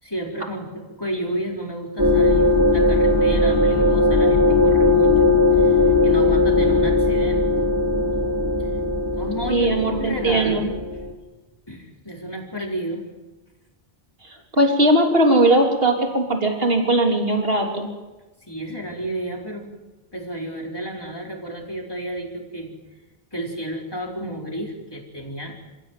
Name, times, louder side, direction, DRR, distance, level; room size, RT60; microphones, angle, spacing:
voice 1, 0.0-7.5 8.1-8.3 8.6-8.7 9.2-10.8 11.7-13.1 18.5-19.7 20.1-22.8 23.3-25.6, right 1 dB, 25° left, 0 dB, 4.7 m, -31 dB
sound 1, 2.0-11.1, left 2 dB, 20° right, 2.9 m, -18 dB
voice 2, 9.5-10.6 14.5-17.9, right 1 dB, 70° right, 2 dB, 3.6 m, -19 dB
29.0 x 16.5 x 9.3 m, 1.1 s
omnidirectional pair, 1.0 m